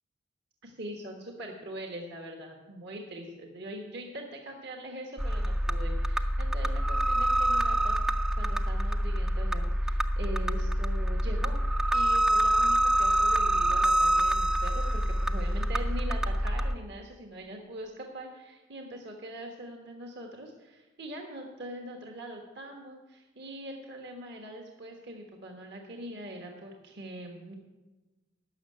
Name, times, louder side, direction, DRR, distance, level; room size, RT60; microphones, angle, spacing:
voice 1, 0.6-11.6 11.9-27.5, right 1 dB, 60° right, 2 dB, 1.4 m, -42 dB
sound 1, 5.2-16.7, right 1 dB, 5° right, 0.3 m, -26 dB
12.5 x 6.4 x 8.8 m, 1.2 s
head